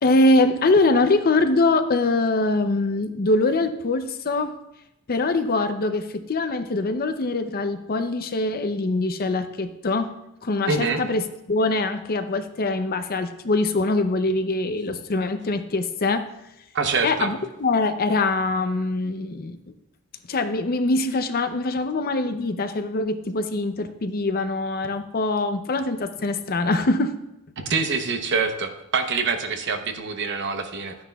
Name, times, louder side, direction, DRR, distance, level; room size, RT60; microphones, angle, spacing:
voice 1, 0.0-4.5 5.1-10.1 10.4-11.2 11.5-16.3 17.0-19.6 20.3-27.1, left 2 dB, 45° left, 9 dB, 0.6 m, -23 dB
voice 2, 10.7-11.0 16.7-17.3 27.6-31.0, right 4 dB, 55° right, 6 dB, 0.9 m, -25 dB
12.5 x 9.5 x 2.3 m, 0.88 s
head